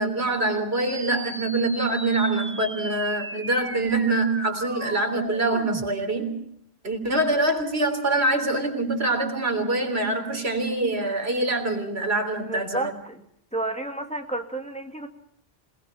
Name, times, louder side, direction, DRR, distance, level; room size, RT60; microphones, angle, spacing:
voice 1, 0.0-6.4 6.8-12.9, right 2 dB, 80° right, 6 dB, 3.8 m, -25 dB
sound 1, 0.9-5.9, right 1 dB, 10° right, 1.2 m, -37 dB
voice 2, 12.4-13.2 13.5-15.1, right 2 dB, 5° left, 4 dB, 2.2 m, -31 dB
28.0 x 19.5 x 5.7 m, 0.70 s
omnidirectional pair, 1.1 m